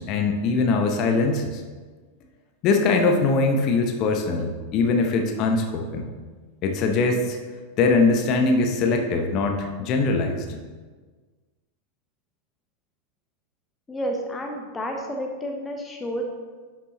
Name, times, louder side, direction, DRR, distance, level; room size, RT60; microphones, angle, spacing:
voice 1, 0.0-1.6 2.6-6.0 6.6-7.4 7.8-10.4, left 3 dB, 40° left, 3 dB, 1.0 m, -22 dB
voice 2, 13.9-16.2, equal, 15° left, 1 dB, 1.1 m, -30 dB
11.0 x 5.8 x 3.1 m, 1.4 s
figure-of-eight pair, 90°, 0 cm